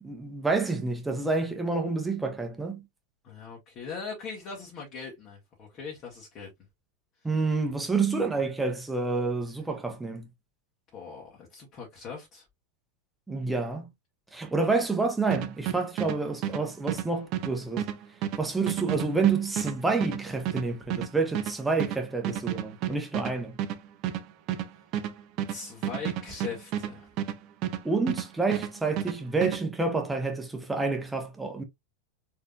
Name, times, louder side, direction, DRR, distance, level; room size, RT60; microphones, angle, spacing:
voice 1, 0.0-2.8 7.2-10.3 13.3-13.9 14.3-17.9 18.4-23.6 27.8-31.6, right 4 dB, 5° right, 1.2 m, -28 dB
voice 2, 3.2-6.5 10.9-12.4 25.5-27.1, left 5 dB, 35° left, 1.8 m, -40 dB
sound 1, 15.3-28.3 28.5-29.6, right 10 dB, 40° right, 0.7 m, -31 dB
4.2 x 4.0 x 2.5 m
figure-of-eight pair, 90°, 0 cm